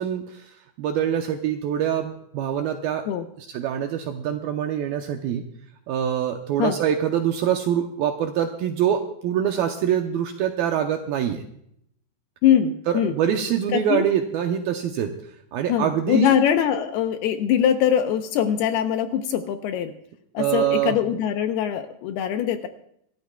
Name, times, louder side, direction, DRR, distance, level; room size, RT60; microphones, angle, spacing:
voice 1, 0.0-3.1 3.4-5.4 5.9-11.4 12.9-15.1 15.5-16.3 20.4-21.0, right 9 dB, 80° right, 5 dB, 2.2 m, -24 dB
voice 2, 12.4-13.1 13.7-14.0 15.7-19.9 20.3-22.7, left 9 dB, 75° left, 7 dB, 2.6 m, -22 dB
25.5 x 13.0 x 2.3 m, 0.71 s
omnidirectional pair, 5.0 m